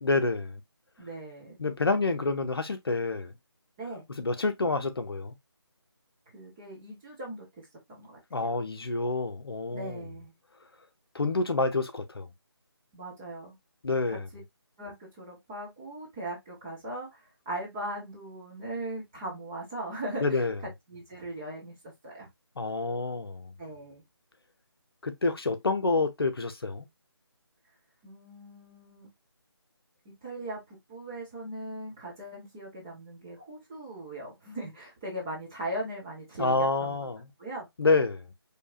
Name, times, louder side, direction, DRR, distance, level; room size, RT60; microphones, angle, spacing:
voice 1, 0.0-0.6 1.6-3.3 4.1-5.3 8.3-10.1 11.1-12.3 13.8-14.3 20.2-20.6 22.6-23.5 25.0-26.9 36.4-37.3 37.8-38.2, left 3 dB, 60° left, 0.8 m, -28 dB
voice 2, 1.0-1.6 3.8-4.1 6.3-7.5 8.0-8.4 9.7-10.3 12.9-13.5 14.1-14.2 14.8-17.2 17.5-20.4 20.9-21.7 22.0-22.3 23.6-24.0 28.0-29.1 30.2-37.0 37.4-37.7, right 1 dB, 5° right, 0.4 m, -39 dB
4.6 x 2.8 x 2.3 m
figure-of-eight pair, 160°, 14 cm